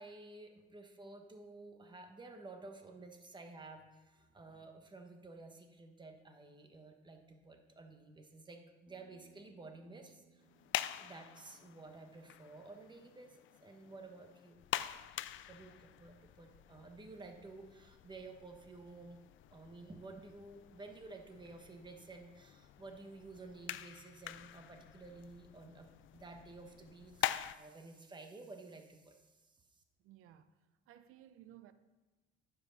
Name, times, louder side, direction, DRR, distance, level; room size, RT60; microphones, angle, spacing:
voice 1, 0.0-10.4 10.9-14.6 15.5-19.2 19.5-29.8, right 3 dB, 20° right, 1.2 m, -53 dB
Bass guitar, 8.9-13.2, right 5 dB, 35° right, 2.0 m, -70 dB
sound 1, 10.4-27.6, left 12 dB, 65° left, 0.4 m, -45 dB
voice 2, 30.0-30.5 30.9-31.7, right 12 dB, 90° right, 0.6 m, -58 dB
9.6 x 5.7 x 6.3 m
cardioid pair, 135°, 21 cm